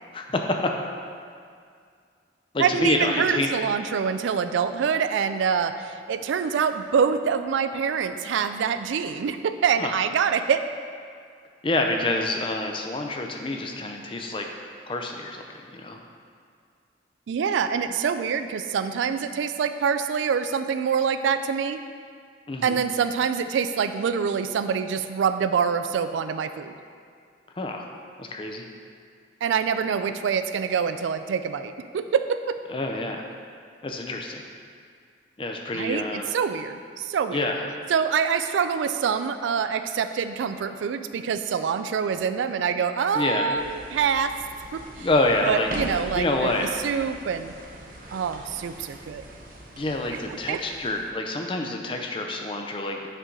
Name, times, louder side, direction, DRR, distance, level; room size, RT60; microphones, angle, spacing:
voice 1, 0.1-0.7 2.5-3.5 9.8-9.9 11.6-14.5 14.9-16.0 22.5-22.8 27.6-27.9 28.2-28.6 32.7-33.2 33.8-34.5 35.4-36.3 37.3-37.7 43.1-43.5 45.0-45.7 46.1-46.7 49.8-53.0, left 2 dB, 25° left, 3 dB, 0.4 m, -27 dB
voice 2, 2.6-10.7 17.3-21.8 22.6-26.7 29.4-32.6 35.7-37.5 37.9-44.3 44.7-45.1 45.4-47.5 48.1-49.2 50.5-50.8, right 6 dB, 80° right, 11 dB, 0.3 m, -25 dB
sound 1, 43.5-51.1, right 1 dB, 45° right, 0.7 m, -41 dB
6.6 x 3.8 x 4.6 m, 2.2 s
head